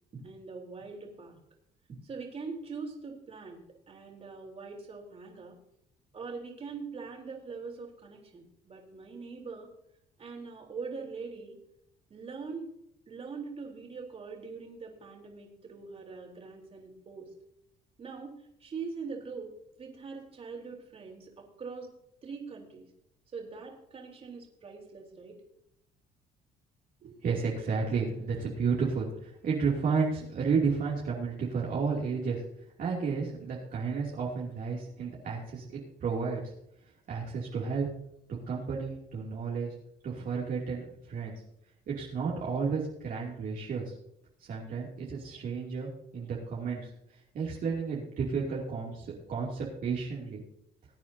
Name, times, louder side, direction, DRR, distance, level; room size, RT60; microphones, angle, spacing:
voice 1, 0.1-1.4 1.9-5.6 6.1-9.7 10.2-11.6 12.1-12.7 13.1-17.3 18.0-18.3 18.6-19.5 19.8-21.9 22.2-22.9 23.3-25.4, right 4 dB, 35° right, 0 dB, 3.7 m, -42 dB
voice 2, 27.0-32.4 32.8-36.5 37.1-37.9 38.5-39.7 40.0-41.3 41.9-43.9 44.4-46.9 47.3-50.4, right 5 dB, 55° right, -4 dB, 2.8 m, -32 dB
21.0 x 9.2 x 2.8 m, 0.76 s
cardioid pair, 110°, 17 cm